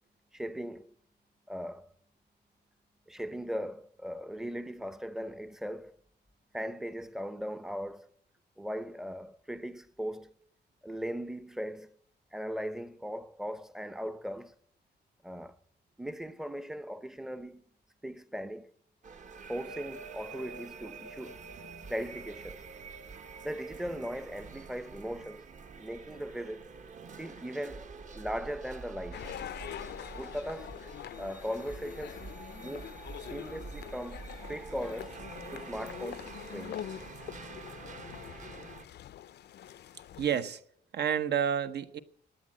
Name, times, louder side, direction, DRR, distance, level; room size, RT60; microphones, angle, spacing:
voice 1, 0.3-0.9 1.5-1.9 3.1-5.9 6.5-8.1 8.6-10.3 10.8-12.0 12.3-14.6 15.2-15.6 16.0-17.6 18.0-18.7 19.5-21.4 21.9-22.6 23.4-25.5 25.8-26.7 27.2-27.9 28.1-29.3 30.1-30.7 31.2-32.2 32.5-32.9 33.3-35.2 35.5-36.9, equal, 5° right, 0.6 m, -38 dB
sound 1, 19.0-38.9, right 4 dB, 45° right, 1.1 m, -47 dB
sound 2, 29.1-40.4, left 11 dB, 70° left, 0.5 m, -44 dB
voice 2, 40.2-40.6 40.9-42.0, right 8 dB, 70° right, 1.0 m, -29 dB
16.5 x 10.0 x 7.5 m
wide cardioid pair, 170°, 18 cm